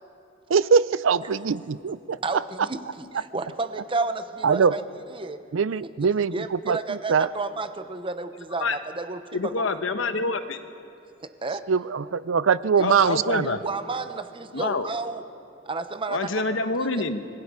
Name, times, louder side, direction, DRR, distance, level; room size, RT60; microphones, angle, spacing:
voice 1, 0.5-2.4 4.4-4.7 5.5-7.3 11.7-13.6, right 6 dB, 85° right, 17 dB, 0.5 m, -22 dB
voice 2, 2.2-4.8 5.1-5.5 6.3-9.7 10.0-10.1 11.2-11.7 13.2-15.3 15.6-16.4 16.9-17.0, right 3 dB, 25° right, 10 dB, 0.9 m, -32 dB
voice 3, 9.3-10.6 12.8-13.6 14.5-14.9 16.1-17.3, left 3 dB, 80° left, 9 dB, 1.1 m, -26 dB
26.5 x 21.0 x 4.9 m, 2.8 s
head